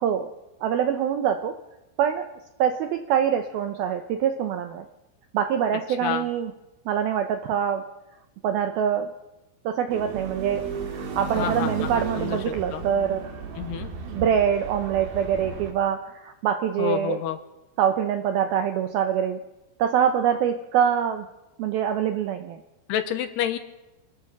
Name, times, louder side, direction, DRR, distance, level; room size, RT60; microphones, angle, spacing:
voice 1, 0.6-1.5 2.0-2.3 2.6-4.9 5.3-6.5 6.9-7.8 8.4-9.1 9.7-13.2 14.0-17.2 17.8-19.4 19.8-21.3 21.6-22.6, right 8 dB, 80° right, 7 dB, 2.2 m, -24 dB
sound 1, 9.9-15.7, right 5 dB, 60° right, 3.7 m, -34 dB
voice 2, 11.4-12.8 13.6-13.9 16.8-17.4 22.9-23.6, left 10 dB, 75° left, 9 dB, 2.8 m, -29 dB
25.0 x 20.5 x 6.0 m, 1.0 s
omnidirectional pair, 5.4 m